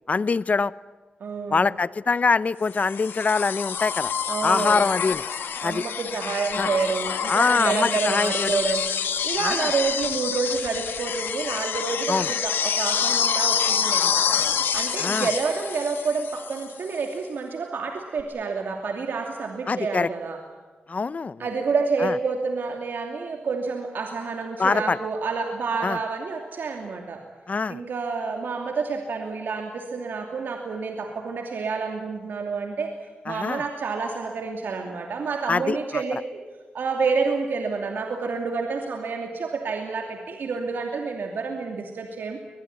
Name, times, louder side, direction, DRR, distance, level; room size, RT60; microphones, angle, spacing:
voice 1, 0.1-0.7 1.5-4.1 4.4-5.2 5.6-5.8 6.6-6.7 7.3-8.6 9.4-9.6 12.1-12.3 15.0-15.3 19.7-20.1 20.9-21.4 22.0-22.1 24.6-25.0 25.8-26.0 27.5-27.8 33.3-33.6 35.5-36.0, left 4 dB, 45° left, 19 dB, 0.7 m, -24 dB
voice 2, 1.2-1.7 4.3-4.9 5.6-8.8 9.2-20.4 21.4-27.2 27.7-32.9 33.2-36.4 36.7-42.4, right 4 dB, 75° right, 3 dB, 2.7 m, -28 dB
sound 1, 2.7-16.7 18.2-18.3, left 7 dB, 90° left, 1.9 m, -27 dB
22.5 x 21.5 x 9.5 m, 1.4 s
cardioid pair, 65°, 3 cm